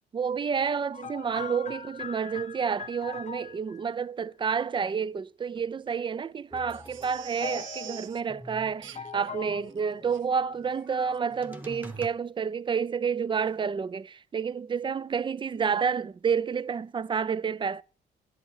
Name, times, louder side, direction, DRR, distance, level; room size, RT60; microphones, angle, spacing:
voice 1, 0.1-17.8, right 6 dB, 25° right, 0.4 m, -29 dB
sound 1, 0.9-3.8 5.6-6.0 7.4-8.1 8.9-9.7, left 6 dB, 35° left, 0.7 m, -40 dB
sound 2, 6.5-12.1, right 1 dB, 10° right, 1.2 m, -46 dB
Crying sobbing, 6.7-8.2 8.8-9.3 9.7-9.8 10.1-10.2 10.7-10.9 11.1-11.2, right 11 dB, 75° right, 0.6 m, -45 dB
11.0 x 8.0 x 4.6 m
cardioid pair, 90°, 20 cm